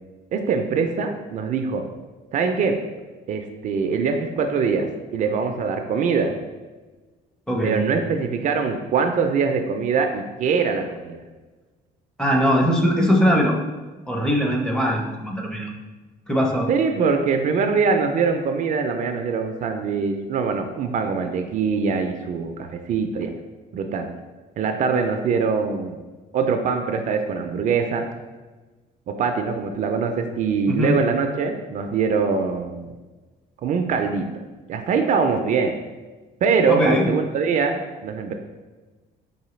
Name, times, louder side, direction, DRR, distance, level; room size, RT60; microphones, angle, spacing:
voice 1, 0.3-1.8 2.3-2.8 3.3-4.9 5.1-6.4 7.6-11.2 16.7-23.3 23.7-24.1 24.6-26.0 26.3-28.1 29.1-32.9 33.6-34.3 34.7-35.8 36.4-38.3, right 5 dB, 50° right, 5 dB, 0.4 m, -23 dB
voice 2, 7.5-7.8 12.2-13.6 14.1-15.7 16.3-16.7 30.7-31.0 36.7-37.1, equal, 5° left, 0 dB, 0.5 m, -20 dB
4.8 x 2.6 x 3.1 m, 1.3 s
cardioid pair, 110°, 17 cm